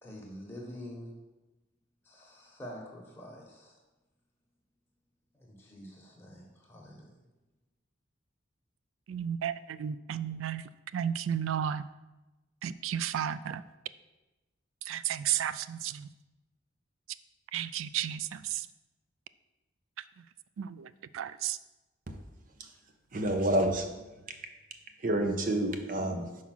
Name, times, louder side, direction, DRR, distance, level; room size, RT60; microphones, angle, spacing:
voice 1, 0.0-1.1 2.0-3.8 5.4-7.1, equal, 10° left, -3 dB, 1.3 m, -46 dB
voice 2, 9.1-10.6 10.9-11.8 12.6-13.6 14.9-16.1 17.5-18.7 20.6-20.9 21.1-21.6, right 9 dB, 80° right, 16 dB, 0.3 m, -33 dB
voice 3, 23.1-24.0 25.0-26.3, right 1 dB, 40° right, 6 dB, 0.6 m, -29 dB
5.6 x 4.8 x 6.0 m, 1.1 s
head